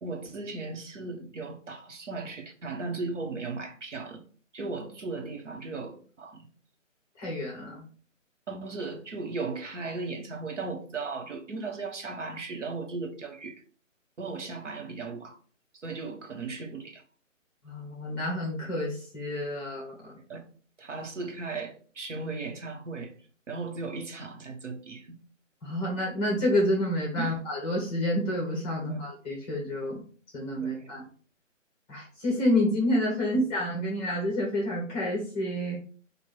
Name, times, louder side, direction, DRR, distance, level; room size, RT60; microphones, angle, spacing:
voice 1, 0.0-4.2 4.5-6.5 8.5-13.6 14.2-15.4 15.7-17.0 20.3-20.4 20.8-23.1 23.5-25.2 27.2-27.4 28.9-29.0 30.6-30.9 33.3-33.4, right 3 dB, 65° right, 1.2 m, -36 dB
voice 2, 7.2-7.8 17.6-20.1 25.6-30.0 30.3-31.0 31.9-35.8, left 1 dB, 10° left, 1.0 m, -29 dB
4.6 x 2.5 x 4.6 m
figure-of-eight pair, 155°, 39 cm